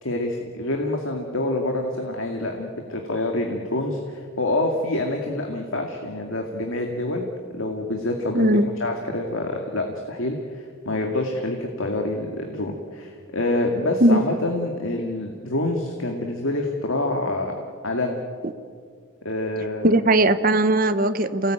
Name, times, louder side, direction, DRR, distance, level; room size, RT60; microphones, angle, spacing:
voice 1, 0.0-7.3 7.5-18.2 19.2-19.9, left 2 dB, 80° left, 2 dB, 2.3 m, -27 dB
voice 2, 8.3-8.7 14.0-14.2 19.8-21.5, right 1 dB, 45° right, 11 dB, 1.1 m, -18 dB
28.5 x 19.0 x 9.1 m, 2.1 s
head